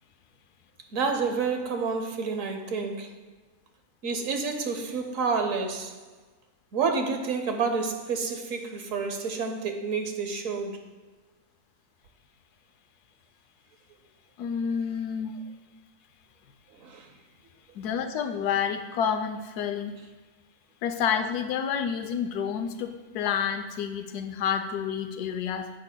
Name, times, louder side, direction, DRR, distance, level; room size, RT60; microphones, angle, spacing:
voice 1, 0.9-3.1 4.0-6.0 6.7-10.8 16.8-17.1, right 5 dB, 65° right, 5 dB, 1.1 m, -29 dB
voice 2, 14.4-15.4 17.7-20.0 20.8-25.7, left 7 dB, 85° left, 7 dB, 1.2 m, -29 dB
10.5 x 7.3 x 2.2 m, 1.3 s
omnidirectional pair, 1.6 m